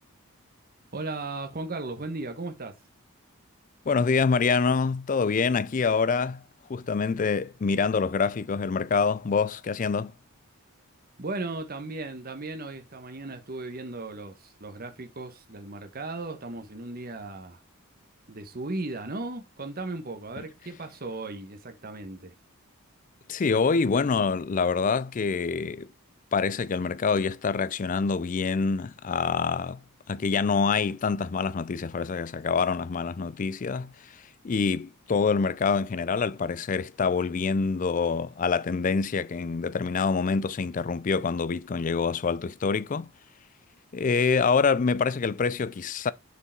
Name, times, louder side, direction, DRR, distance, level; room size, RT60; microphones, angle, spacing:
voice 1, 0.9-2.8 11.2-17.6 18.3-22.3, right 2 dB, 40° right, 1.1 m, -36 dB
voice 2, 3.9-6.4 6.7-10.1 23.3-25.9 26.3-29.8 30.1-43.1 43.9-46.1, left 5 dB, 35° left, 0.4 m, -26 dB
6.8 x 4.7 x 4.4 m
head